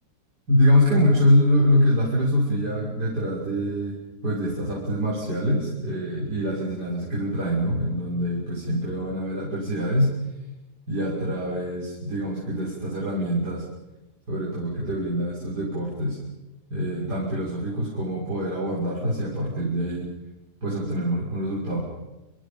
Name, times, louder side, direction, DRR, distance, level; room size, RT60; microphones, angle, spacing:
voice 1, 0.5-3.9 4.2-10.1 10.9-13.6 14.3-16.2 16.7-20.0 20.6-21.8, equal, 75° right, -7 dB, 6.9 m, -24 dB
29.0 x 28.5 x 5.3 m, 1.0 s
omnidirectional pair, 1.8 m